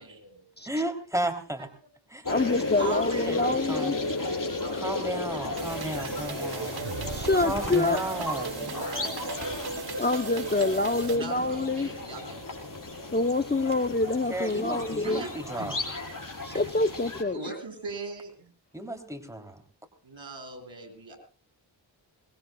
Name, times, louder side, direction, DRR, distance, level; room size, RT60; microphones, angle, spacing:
voice 1, 0.0-0.5 2.8-4.0 4.3-5.0 5.3-7.5 8.6-9.4 10.4-10.7 11.1-12.9 15.0-15.9 16.5-16.7 17.3-18.5 20.0-21.2, right 3 dB, 70° right, 5 dB, 6.2 m, -42 dB
voice 2, 0.6-1.7 2.1-2.3 3.3-3.9 4.7-6.9 7.3-8.7 14.3-15.8 18.7-19.6, right 1 dB, 5° right, 5 dB, 3.3 m, -33 dB
sound 1, 2.2-17.2, left 2 dB, 45° left, 5.5 m, -34 dB
voice 3, 2.3-3.9 7.1-8.0 10.0-11.9 13.1-15.2 16.4-17.4, left 2 dB, 20° left, 9 dB, 0.8 m, -26 dB
sound 2, 5.6-11.2, right 5 dB, 55° right, 1.2 m, -36 dB
23.5 x 21.0 x 2.3 m, 0.37 s
cardioid pair, 55°, 46 cm